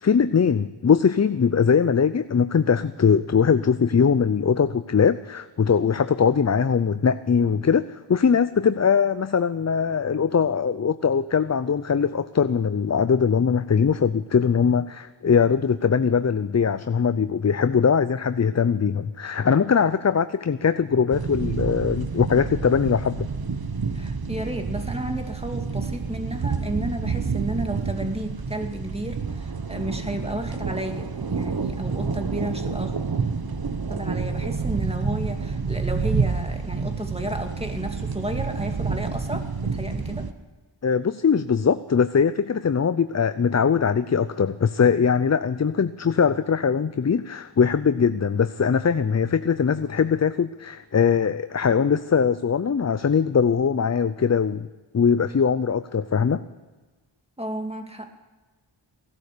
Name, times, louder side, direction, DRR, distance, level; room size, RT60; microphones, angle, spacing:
voice 1, 0.0-23.3 40.8-54.7 54.9-56.4, left 6 dB, 35° left, 13 dB, 0.5 m, -21 dB
sound 1, 21.1-40.3, right 4 dB, 50° right, 1.2 m, -28 dB
voice 2, 23.9-32.9 33.9-40.3 57.4-58.1, right 1 dB, 10° right, 4 dB, 2.4 m, -32 dB
17.5 x 12.5 x 6.7 m, 1.3 s
wide cardioid pair, 45°, 48 cm